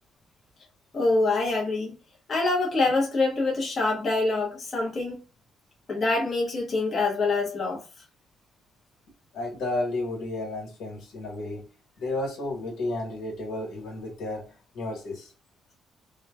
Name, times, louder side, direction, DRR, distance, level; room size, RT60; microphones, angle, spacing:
voice 1, 0.9-1.9 2.3-5.2 5.9-7.8, left 3 dB, 40° left, 0.9 m, -25 dB
voice 2, 9.3-11.7 12.0-15.3, left 2 dB, 85° left, 1.4 m, -32 dB
3.0 x 2.2 x 2.3 m
cardioid pair, 90°, 0 cm